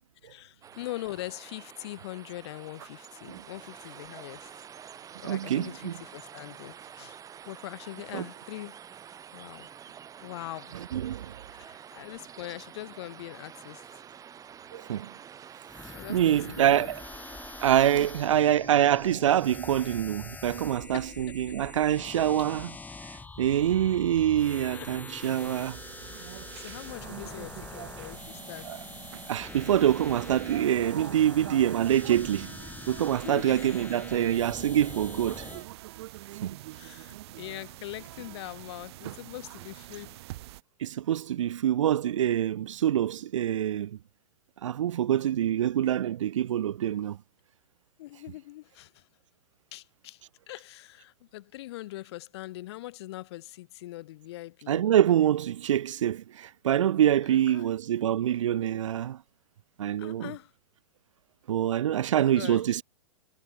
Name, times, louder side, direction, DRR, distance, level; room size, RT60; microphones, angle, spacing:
voice 1, 0.2-4.5 5.2-7.2 7.4-8.8 9.3-9.7 10.2-10.7 11.6-13.9 15.9-16.9 17.9-18.5 20.9-21.1 23.7-24.0 24.6-24.9 25.8-28.7 31.4-31.7 33.2-34.0 36.7-40.2 48.0-49.1 49.7-54.8 57.2-57.7 60.0-60.5 62.3-62.8, left 17 dB, 55° left, 1.3 m, -42 dB
sound 1, 0.6-18.1, right 8 dB, 20° right, 1.6 m, -48 dB
voice 2, 5.2-5.9 8.1-8.2 10.9-11.3 14.7-15.1 16.1-17.0 17.6-22.7 23.4-25.8 28.7-28.8 29.3-32.6 32.9-35.5 36.4-36.6 40.8-44.0 44.6-47.2 54.7-59.2 59.8-60.3 61.5-62.8, right 11 dB, 70° right, 0.5 m, -25 dB
sound 2, 15.7-35.7, left 4 dB, 10° left, 2.2 m, -44 dB
sound 3, 25.2-40.6, right 17 dB, 50° right, 1.0 m, -45 dB
figure-of-eight pair, 105°, 17 cm